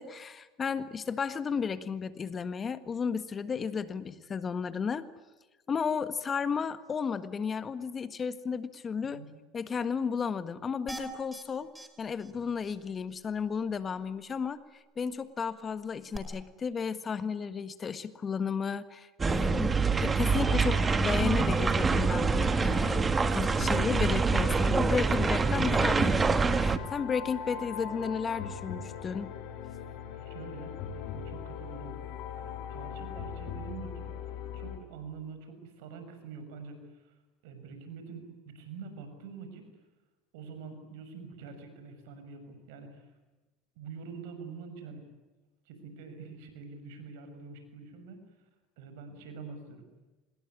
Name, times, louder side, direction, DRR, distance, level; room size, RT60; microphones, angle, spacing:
voice 1, 0.0-5.1 5.7-9.2 9.5-11.7 12.0-14.6 15.0-29.3, left 6 dB, 30° left, 13 dB, 1.6 m, -33 dB
sound 1, 10.9-11.4 11.8-11.9 12.2-12.3 12.6-12.8 16.1-16.2, right 1 dB, 5° right, 4.9 m, -41 dB
sound 2, 19.2-26.8, right 4 dB, 25° right, 1.9 m, -26 dB
sound 3, 20.2-34.8, left 7 dB, 65° left, 4.1 m, -41 dB
voice 2, 30.2-31.9 32.3-37.1 37.4-39.7 40.3-43.1 43.7-45.0 45.6-48.2 48.8-49.8, right 5 dB, 75° right, 8 dB, 6.6 m, -45 dB
25.5 x 21.0 x 10.0 m, 1.1 s
hypercardioid pair, 90°, 0 cm